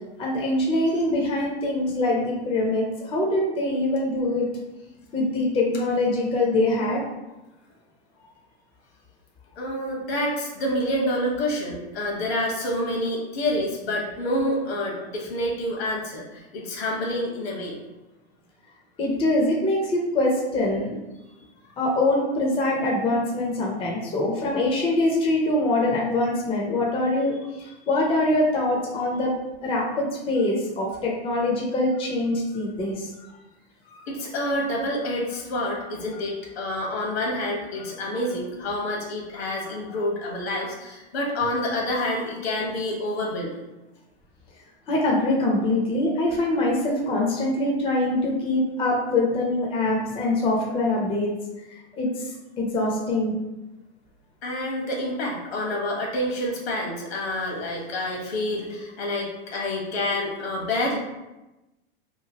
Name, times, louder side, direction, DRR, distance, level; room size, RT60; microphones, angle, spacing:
voice 1, 0.2-4.5 5.1-7.0 19.0-21.0 21.8-29.3 29.6-33.1 44.9-51.3 51.9-52.3 52.6-53.3, left 2 dB, 20° left, -2 dB, 0.5 m, -24 dB
voice 2, 9.6-17.8 33.8-43.7 54.4-61.0, left 1 dB, 75° left, -1 dB, 1.2 m, -28 dB
3.0 x 2.3 x 2.8 m, 1.0 s
hypercardioid pair, 115°, 32 cm